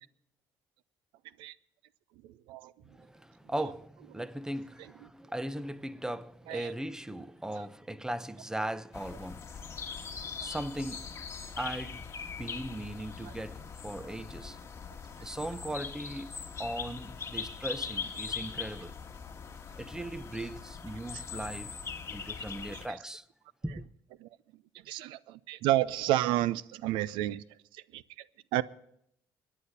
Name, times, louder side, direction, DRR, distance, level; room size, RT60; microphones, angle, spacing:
voice 1, 2.2-2.7 6.5-6.7 13.2-13.3 22.7-23.0 24.2-24.3 24.8-27.4 27.7-28.2 28.5-28.6, right 14 dB, 90° right, 0.6 m, -31 dB
voice 2, 2.9-11.1 11.6-14.6 15.2-16.3 16.6-18.9 19.8-21.7 22.1-23.2 23.6-23.9, right 1 dB, 5° right, 0.9 m, -38 dB
sound 1, 8.9-22.9, left 6 dB, 35° left, 1.7 m, -41 dB
24.5 x 10.0 x 4.2 m
cardioid pair, 85°, 8 cm